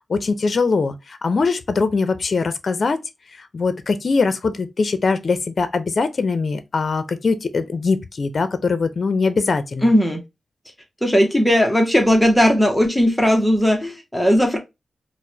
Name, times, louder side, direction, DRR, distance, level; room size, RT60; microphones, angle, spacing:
voice 1, 0.1-3.0 3.5-9.9, left 4 dB, 55° left, 0.5 m, -21 dB
voice 2, 9.8-10.2 11.0-14.6, equal, 5° left, 0.7 m, -17 dB
4.6 x 2.0 x 2.7 m
wide cardioid pair, 130°, 0 cm